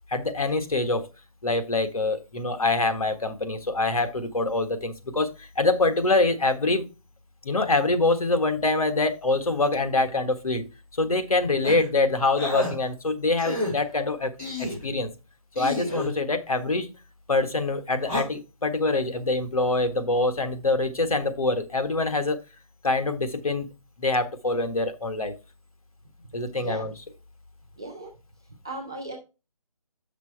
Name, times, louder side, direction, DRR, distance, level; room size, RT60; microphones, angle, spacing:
voice 1, 0.1-1.1 1.4-6.9 7.4-10.7 11.0-14.3 14.6-15.1 15.5-16.9 17.3-22.4 22.8-23.7 24.0-25.3 26.3-26.9, left 2 dB, 75° left, 7 dB, 1.5 m, -25 dB
sound 1, 11.6-11.9 12.4-12.7 13.4-13.7 14.4-14.8 15.6-16.1 18.0-18.2, left 1 dB, 15° left, 2.6 m, -29 dB
voice 2, 26.5-26.9 27.8-28.1 28.6-29.2, right 1 dB, 10° right, -2 dB, 0.3 m, -37 dB
7.0 x 6.0 x 4.5 m, 0.30 s
figure-of-eight pair, 160°, 18 cm